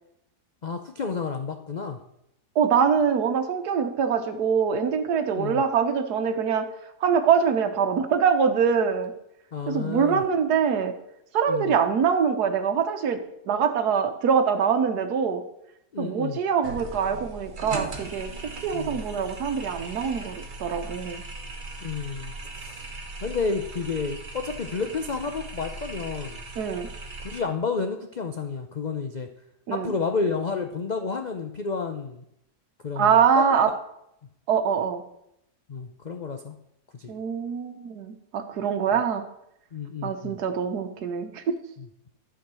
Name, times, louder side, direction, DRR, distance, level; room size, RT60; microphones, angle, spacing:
voice 1, 0.6-2.0 5.3-5.6 9.5-10.2 11.5-11.7 15.9-16.4 18.7-19.0 21.8-22.8 23.2-26.4 27.2-29.3 29.7-32.2 32.8-33.4 35.7-36.6 36.9-37.1 39.7-40.4 41.8-41.9, left 4 dB, 80° left, 5 dB, 0.4 m, -31 dB
voice 2, 2.6-6.7 7.0-9.1 9.7-10.9 11.3-13.2 13.5-15.4 16.0-18.3 18.6-21.2 26.6-26.9 29.7-29.9 33.0-33.7 34.5-35.0 37.1-39.2 40.0-41.6, right 7 dB, 75° right, 8 dB, 1.5 m, -24 dB
sound 1, 16.6-27.4, right 3 dB, 35° right, 1.1 m, -38 dB
11.5 x 5.0 x 6.2 m, 0.79 s
omnidirectional pair, 1.7 m